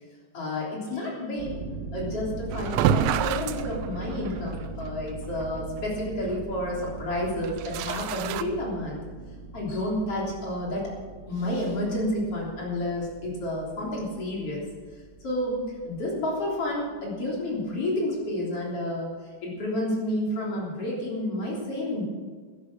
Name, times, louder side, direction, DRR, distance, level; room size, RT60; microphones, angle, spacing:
voice 1, 0.3-1.6 1.9-9.0 9.5-10.9 11.3-14.6 15.2-19.1 19.4-22.0, left 1 dB, 35° left, -4 dB, 3.9 m, -30 dB
sound 1, 1.4-17.1, right 4 dB, 30° right, 2.9 m, -40 dB
sound 2, 2.5-4.5 4.9-5.0 5.4-5.5 7.4-8.4, right 10 dB, 85° right, 2.9 m, -27 dB
13.5 x 11.5 x 6.1 m, 1.5 s
omnidirectional pair, 5.1 m